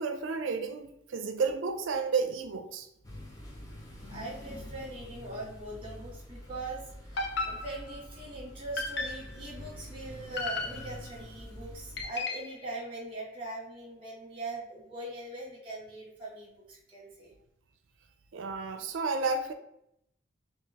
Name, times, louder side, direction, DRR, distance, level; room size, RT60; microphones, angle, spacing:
voice 1, 0.0-2.9 18.3-19.5, right 4 dB, 85° right, 0.4 m, -31 dB
sound 1, 3.0-12.0, left 1 dB, 20° left, 0.6 m, -46 dB
voice 2, 4.1-17.3, right 2 dB, 30° right, 1.3 m, -41 dB
sound 2, 7.2-8.1 8.8-9.4 10.4-11.2 12.0-12.6, left 3 dB, 60° left, 0.5 m, -35 dB
3.7 x 2.8 x 2.8 m
head